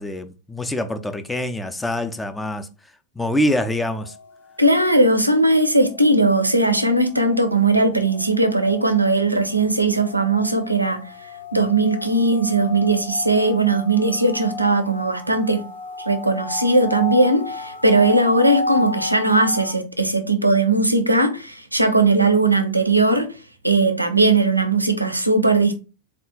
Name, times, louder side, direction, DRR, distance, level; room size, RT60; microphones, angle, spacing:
voice 1, 0.0-2.7 3.2-4.1, left 1 dB, 10° left, 0.4 m, -25 dB
sound 1, 3.5-19.7, left 2 dB, 65° left, 0.6 m, -34 dB
voice 2, 4.6-11.0 11.5-15.6 16.1-23.3 23.6-25.8, right 2 dB, 85° right, 0.5 m, -18 dB
3.7 x 2.3 x 3.6 m
figure-of-eight pair, 90°, 0 cm